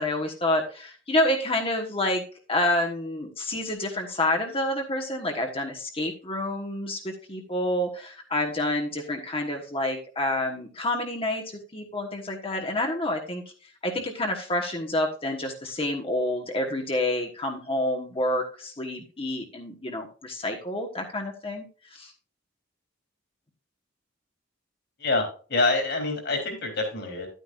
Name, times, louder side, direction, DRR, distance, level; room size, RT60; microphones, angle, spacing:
voice 1, 0.0-2.2 2.5-11.4 11.7-13.4 13.8-21.7 22.0-22.1, left 1 dB, 30° left, 2 dB, 1.3 m, -28 dB
voice 2, 25.0-27.3, left 3 dB, 60° left, 3 dB, 3.4 m, -26 dB
11.0 x 9.2 x 2.5 m, 0.38 s
head